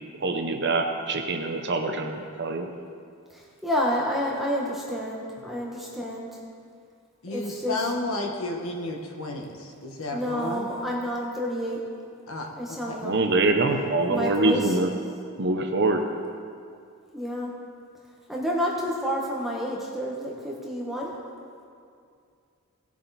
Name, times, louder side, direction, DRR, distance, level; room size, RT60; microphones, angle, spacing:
voice 1, 0.2-2.7 13.0-14.9 15.4-16.0, right 2 dB, 50° right, 4 dB, 0.8 m, -24 dB
voice 2, 3.3-6.3 7.3-7.8 10.1-11.8 12.5-13.2 14.1-14.7 17.1-17.5 18.3-21.2, equal, ahead, -4 dB, 1.2 m, -29 dB
voice 3, 7.2-10.8 12.3-13.0, left 2 dB, 65° left, 1 dB, 1.4 m, -32 dB
17.5 x 7.4 x 4.2 m, 2.3 s
head